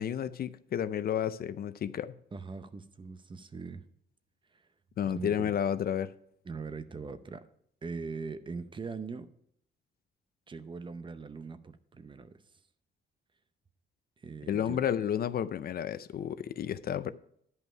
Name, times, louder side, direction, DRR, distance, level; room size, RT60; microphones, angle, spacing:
voice 1, 0.0-2.1 5.0-6.1 14.5-17.1, left 9 dB, 50° left, 0.5 m, -31 dB
voice 2, 2.3-3.8 4.5-4.7 5.1-5.5 6.4-7.5 7.8-9.3 10.5-12.4 14.2-14.8, right 4 dB, 25° right, 0.6 m, -41 dB
11.0 x 5.5 x 5.5 m
cardioid pair, 135°, 20 cm